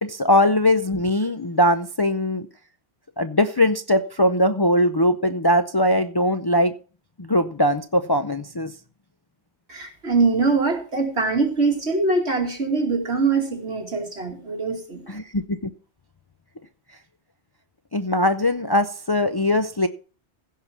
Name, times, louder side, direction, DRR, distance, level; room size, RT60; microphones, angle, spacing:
voice 1, 0.0-2.5 3.2-6.7 7.2-8.7 15.1-15.7 17.9-19.9, left 1 dB, 30° left, 0.5 m, -21 dB
voice 2, 9.7-15.2, right 3 dB, 75° right, 2.6 m, -23 dB
16.0 x 5.7 x 6.0 m
omnidirectional pair, 1.1 m